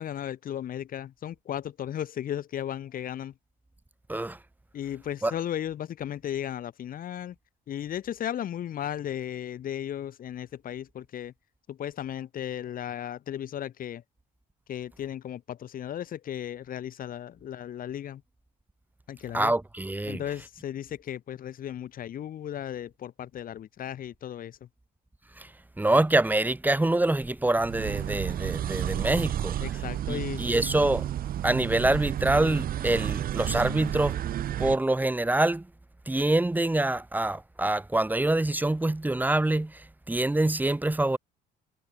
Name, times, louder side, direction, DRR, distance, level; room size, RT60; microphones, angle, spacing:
voice 1, 0.0-3.3 4.7-7.3 7.7-11.3 11.7-14.0 14.7-18.2 19.1-19.5 20.0-24.7 29.6-30.5, left 10 dB, 55° left, 5.0 m, -35 dB
voice 2, 19.3-20.2 25.4-25.5 25.8-29.6 30.1-31.1 31.4-34.2 34.6-35.7 36.1-41.2, right 2 dB, 10° right, 6.6 m, -25 dB
sound 1, 27.5-34.8, right 11 dB, 60° right, 2.4 m, -31 dB
cardioid pair, 110°, 17 cm